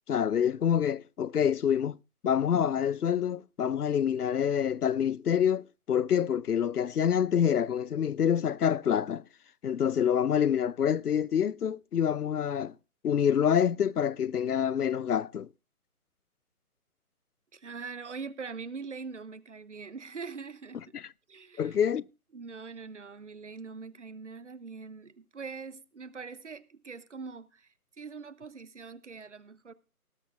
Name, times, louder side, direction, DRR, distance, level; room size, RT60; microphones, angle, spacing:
voice 1, 0.1-2.0 2.2-9.2 9.6-12.7 13.0-15.5 20.9-21.1 21.6-22.0, left 8 dB, 80° left, 0.6 m, -27 dB
voice 2, 17.5-20.9 21.3-21.8 22.3-27.7 28.0-29.7, right 5 dB, 55° right, 0.8 m, -42 dB
18.5 x 11.5 x 2.5 m
figure-of-eight pair, 160°, 45 cm